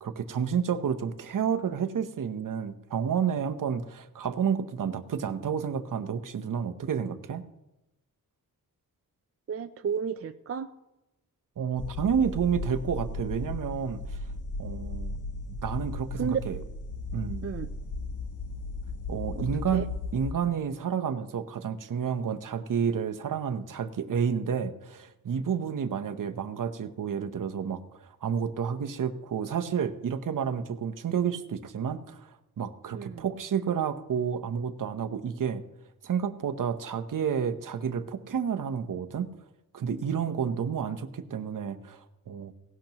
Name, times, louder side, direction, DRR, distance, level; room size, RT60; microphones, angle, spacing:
voice 1, 0.0-7.4 11.6-14.2 14.6-15.2 15.6-16.6 17.1-17.4 19.1-19.8 20.1-35.6 36.0-39.3 39.7-42.6, right 7 dB, 60° right, 9 dB, 0.9 m, -30 dB
voice 2, 9.5-10.7 16.2-16.4 17.4-17.7 19.4-19.5 19.7-19.8 32.9-33.2, right 7 dB, 40° right, 9 dB, 0.4 m, -32 dB
sound 1, 11.8-20.3, left 3 dB, 55° left, 1.2 m, -36 dB
17.0 x 12.0 x 3.0 m, 0.95 s
wide cardioid pair, 110°, 36 cm